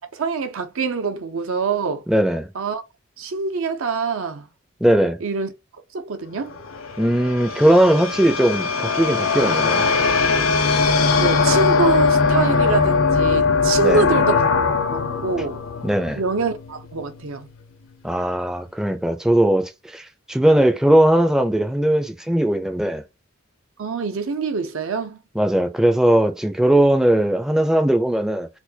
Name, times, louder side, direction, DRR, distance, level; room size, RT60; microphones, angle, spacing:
voice 1, 0.1-2.0 2.5-2.8 3.2-4.4 5.2-5.5 5.9-6.5 11.1-14.5 14.9-15.6 16.2-17.5 23.8-25.2, right 5 dB, 85° right, 0.6 m, -25 dB
voice 2, 2.1-2.5 4.8-5.2 7.0-9.9 13.8-14.1 15.8-16.2 18.0-23.0 25.4-28.5, right 1 dB, 5° right, 0.4 m, -19 dB
sound 1, 6.5-16.8, left 4 dB, 85° left, 0.7 m, -20 dB
4.2 x 2.2 x 2.7 m
head